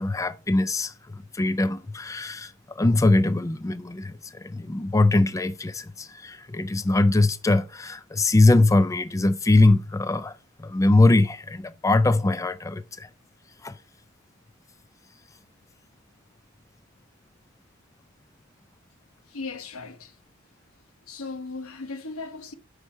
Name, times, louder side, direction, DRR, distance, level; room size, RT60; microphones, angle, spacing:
voice 1, 0.0-13.1 13.6-13.8, left 2 dB, 15° left, 0.4 m, -22 dB
voice 2, 19.3-20.1 21.1-22.5, left 3 dB, 85° left, 1.0 m, -37 dB
8.1 x 5.3 x 4.3 m
head